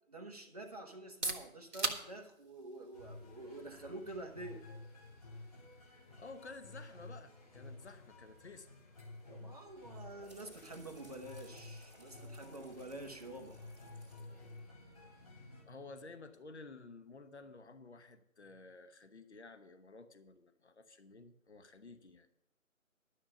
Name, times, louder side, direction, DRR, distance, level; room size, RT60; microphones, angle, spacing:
voice 1, 0.1-4.6 9.3-13.6, right 2 dB, 30° right, 3 dB, 1.2 m, -48 dB
sound 1, 0.9-16.6, right 2 dB, 55° right, 1.6 m, -48 dB
sound 2, 2.9-15.6, left 2 dB, 25° left, 2.9 m, -53 dB
voice 2, 6.2-8.7 15.7-22.3, left 3 dB, 55° left, 9 dB, 1.1 m, -53 dB
sound 3, 9.7-15.3, equal, 10° right, 2.4 m, -62 dB
12.0 x 6.5 x 6.9 m, 0.83 s
figure-of-eight pair, 160°, 41 cm